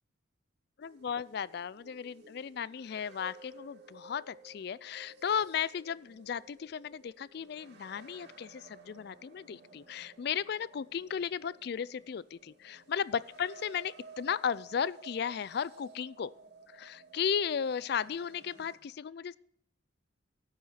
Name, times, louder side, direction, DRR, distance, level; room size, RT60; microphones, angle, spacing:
voice 1, 0.8-16.3 16.7-19.4, left 7 dB, 50° left, 21 dB, 0.3 m, -35 dB
sound 1, 0.8-18.8, right 3 dB, 55° right, 2.4 m, -55 dB
11.5 x 8.6 x 5.7 m, 0.70 s
head